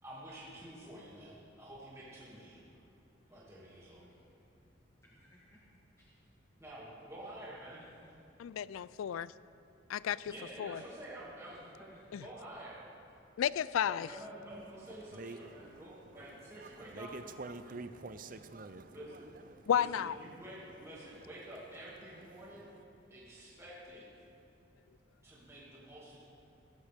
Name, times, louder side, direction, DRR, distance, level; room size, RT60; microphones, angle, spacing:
voice 1, 0.0-2.6 3.3-4.1 6.6-7.8 10.3-11.9 12.1-12.8 13.8-17.1 18.9-19.3 19.7-22.7 23.1-24.1 25.2-26.2, right 1 dB, 15° right, 2.4 m, -49 dB
voice 2, 3.3-4.4 5.0-5.6 6.0-6.2 7.8-8.1 8.9-9.0 11.4-12.4, equal, 15° left, 1.3 m, -64 dB
voice 3, 8.4-9.3 9.9-10.3 10.6-10.8 12.1-12.2 13.4-14.1 19.7-20.1, left 9 dB, 90° left, 0.3 m, -32 dB
voice 4, 14.5-19.7 20.2-22.8, right 3 dB, 45° right, 0.6 m, -50 dB
16.5 x 14.5 x 3.6 m
head